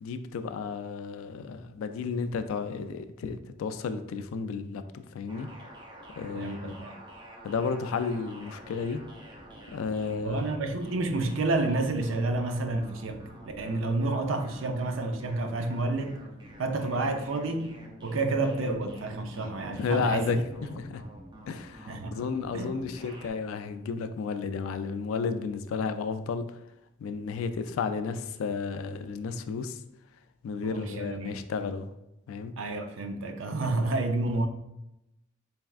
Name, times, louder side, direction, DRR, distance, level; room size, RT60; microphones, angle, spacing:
voice 1, 0.0-5.5 6.2-6.7 7.4-9.0 9.7-10.4 19.4-19.5 19.8-21.0 21.5-26.6 27.0-29.8 30.4-31.9 32.3-32.5 33.6-33.7, left 5 dB, 90° left, 0.3 m, -32 dB
sound 1, 5.3-23.3, right 1 dB, 20° right, 0.5 m, -48 dB
voice 2, 6.3-7.0 10.2-16.2 16.6-17.7 18.0-20.4 21.9-22.2 22.5-22.8 30.6-31.4 32.6-34.5, right 2 dB, 75° right, 0.5 m, -30 dB
4.2 x 3.4 x 2.3 m
head